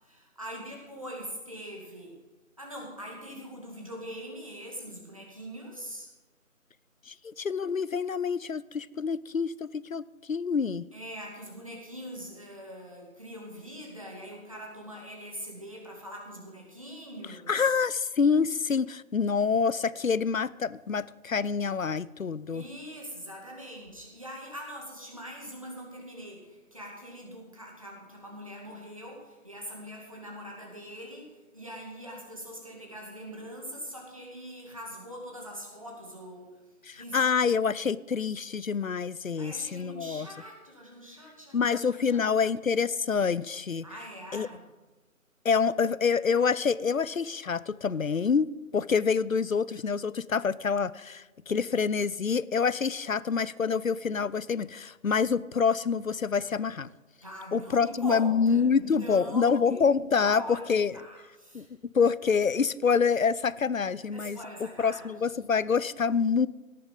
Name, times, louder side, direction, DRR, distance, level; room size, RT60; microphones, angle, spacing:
voice 1, 0.0-2.2 2.6-6.1 10.9-17.8 22.5-36.6 36.9-37.2 39.4-42.2 43.8-44.7 57.2-59.8 60.2-60.6 60.9-61.7 64.1-65.1, equal, 25° right, -2 dB, 2.1 m, -42 dB
voice 2, 7.1-10.8 17.5-22.6 36.9-40.3 41.5-43.9 44.3-44.5 45.4-56.9 57.5-60.9 61.5-61.7 61.9-64.4 64.8-66.5, left 5 dB, 70° left, 20 dB, 0.6 m, -27 dB
17.5 x 9.4 x 5.3 m, 1.2 s
figure-of-eight pair, 175°, 43 cm